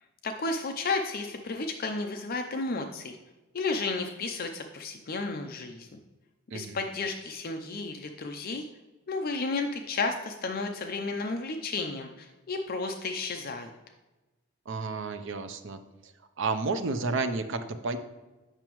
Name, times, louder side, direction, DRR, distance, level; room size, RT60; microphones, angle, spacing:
voice 1, 0.2-3.2 3.5-5.9 6.5-8.7 9.1-13.7, left 3 dB, 45° left, 5 dB, 0.5 m, -32 dB
voice 2, 14.7-16.1 16.4-18.0, right 3 dB, 65° right, 8 dB, 0.6 m, -31 dB
8.9 x 5.9 x 3.0 m, 1.1 s
head